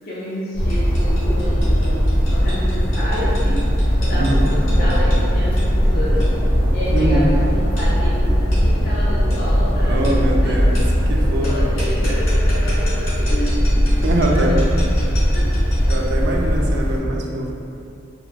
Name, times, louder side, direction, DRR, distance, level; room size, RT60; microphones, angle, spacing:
voice 1, 0.0-3.7 4.0-6.3 6.7-10.6 11.2-13.6 14.0-14.8 15.3-15.5, equal, 50° left, -9 dB, 0.5 m, -29 dB
sound 1, 0.5-17.0, equal, 25° left, 0.8 m, -18 dB
sound 2, 0.7-16.2, left 1 dB, 80° left, 0.9 m, -38 dB
voice 2, 6.9-7.3 9.8-11.7 14.0-14.6 15.9-17.5, right 1 dB, 60° right, 0 dB, 0.3 m, -23 dB
2.6 x 2.2 x 2.2 m, 2.5 s
head